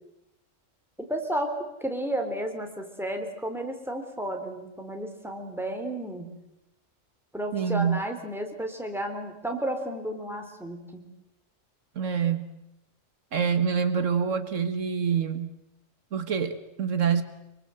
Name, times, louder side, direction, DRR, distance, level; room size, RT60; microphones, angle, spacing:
voice 1, 1.1-1.5 1.8-6.3 7.3-11.0, right 1 dB, ahead, 3 dB, 3.5 m, -32 dB
voice 2, 7.5-8.0 12.0-12.5 13.3-15.5 16.1-17.2, right 7 dB, 75° right, 10 dB, 1.8 m, -26 dB
25.0 x 24.0 x 7.8 m, 0.87 s
omnidirectional pair, 1.3 m